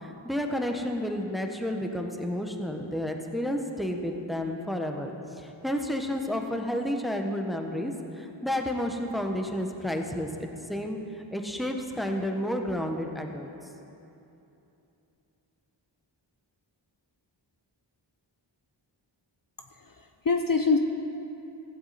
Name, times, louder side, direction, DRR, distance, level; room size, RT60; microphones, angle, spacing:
voice 1, 0.0-5.1 5.4-13.5, left 1 dB, ahead, 3 dB, 1.3 m, -31 dB
voice 2, 19.7-20.8, left 4 dB, 45° left, 5 dB, 0.8 m, -25 dB
15.5 x 15.0 x 4.3 m, 2.9 s
wide cardioid pair, 55°, 46 cm